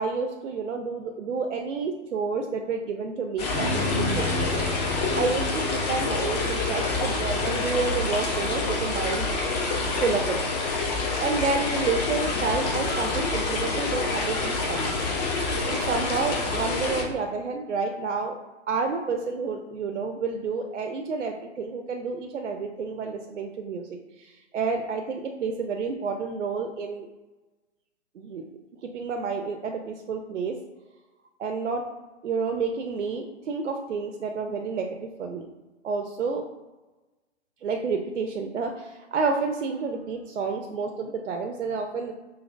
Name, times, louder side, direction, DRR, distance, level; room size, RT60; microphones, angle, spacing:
voice 1, 0.0-4.6 5.1-9.3 10.0-10.6 11.2-15.0 15.7-18.4 18.7-27.1 28.2-28.4 28.8-30.5 31.4-31.8 32.2-34.9 35.2-35.5 35.8-36.4 37.6-42.1, right 4 dB, 80° right, 3 dB, 0.5 m, -30 dB
sound 1, 3.4-17.0, left 3 dB, 35° left, 0.8 m, -27 dB
sound 2, 3.5-8.2, left 1 dB, ahead, 0.4 m, -33 dB
5.1 x 2.8 x 2.4 m, 1.2 s
figure-of-eight pair, 130°, 36 cm